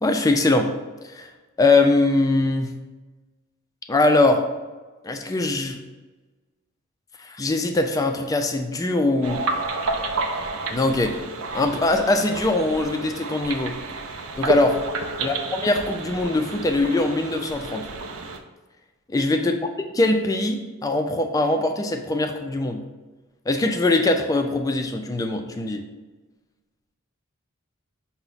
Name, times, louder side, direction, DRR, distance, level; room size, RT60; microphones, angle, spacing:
voice 1, 0.0-0.7 1.0-1.3 1.6-2.8 3.9-4.4 5.0-5.8 7.2-9.4 10.7-11.2 11.5-13.8 14.4-14.8 15.2-17.9 19.1-19.5 20.0-22.8 23.5-25.8, left 2 dB, 15° left, 5 dB, 0.3 m, -22 dB
sound 1, 9.2-18.4, right 2 dB, 85° right, 0.4 m, -30 dB
5.7 x 2.1 x 3.9 m, 1.2 s
head